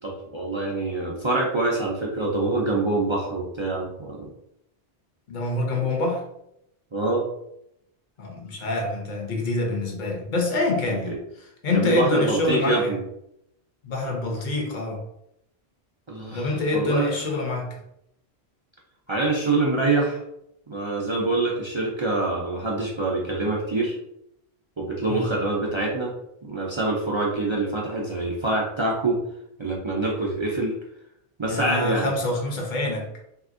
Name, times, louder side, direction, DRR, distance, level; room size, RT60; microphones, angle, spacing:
voice 1, 0.0-4.3 6.9-7.3 11.1-11.2 11.7-13.0 16.1-17.1 19.1-20.2 20.7-24.0 24.8-26.1 26.4-29.2 29.6-30.7 31.4-32.1, right 2 dB, 40° right, -3 dB, 0.4 m, -25 dB
voice 2, 5.3-6.2 8.2-12.9 13.8-15.0 16.3-17.7 25.1-25.3 31.4-33.1, left 2 dB, 50° left, 0 dB, 0.8 m, -26 dB
3.3 x 2.7 x 2.5 m, 0.78 s
omnidirectional pair, 1.1 m